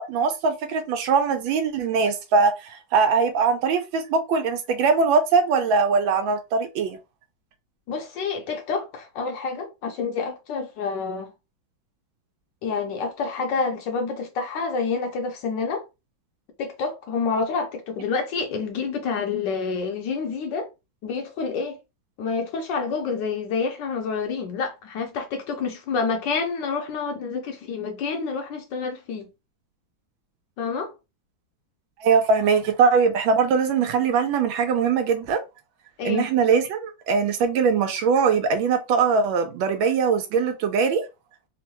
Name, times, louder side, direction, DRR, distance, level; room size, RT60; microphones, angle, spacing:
voice 1, 0.0-7.0 32.0-35.4 36.0-41.0, right 5 dB, 80° right, 1.3 m, -21 dB
voice 2, 7.9-11.3 12.6-15.8 16.6-20.7 21.0-21.8 22.2-29.3 30.6-30.9 36.0-36.3, left 5 dB, 75° left, 1.2 m, -28 dB
3.6 x 2.1 x 2.9 m
omnidirectional pair, 2.1 m